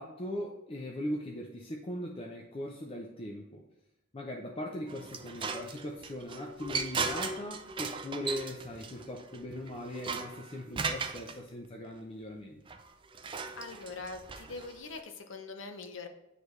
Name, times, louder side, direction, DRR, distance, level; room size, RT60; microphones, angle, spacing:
voice 1, 0.0-3.6 4.1-12.6, left 1 dB, 25° left, 0 dB, 0.5 m, -39 dB
sound 1, 4.9-11.3 12.7-15.0, right 4 dB, 25° right, 0.4 m, -37 dB
voice 2, 13.6-16.1, left 3 dB, 65° left, 6 dB, 0.7 m, -43 dB
9.3 x 3.4 x 3.2 m, 0.98 s
head